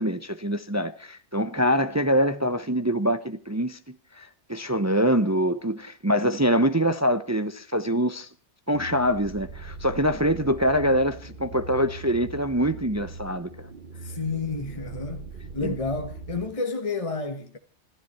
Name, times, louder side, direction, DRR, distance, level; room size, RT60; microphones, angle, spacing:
voice 1, 0.0-8.3 8.7-13.7 15.6-15.7, equal, 15° right, 0.8 m, -24 dB
sound 1, 8.7-16.4, right 3 dB, 50° right, 1.2 m, -41 dB
voice 2, 14.0-15.3 15.5-17.6, left 3 dB, 30° left, 1.4 m, -30 dB
26.5 x 12.5 x 4.3 m
omnidirectional pair, 1.2 m